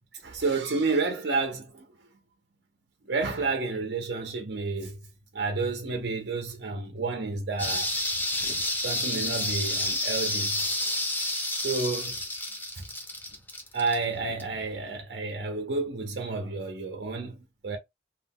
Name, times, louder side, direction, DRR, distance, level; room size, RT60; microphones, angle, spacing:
voice 1, 0.1-1.9 3.1-5.0 5.3-7.9 8.8-10.6 11.5-12.2 12.8-12.9 13.7-17.8, right 3 dB, 65° right, 0.6 m, -30 dB
sound 1, 7.6-14.6 15.0-15.1, left 1 dB, 10° left, 0.6 m, -30 dB
2.4 x 2.2 x 3.5 m
head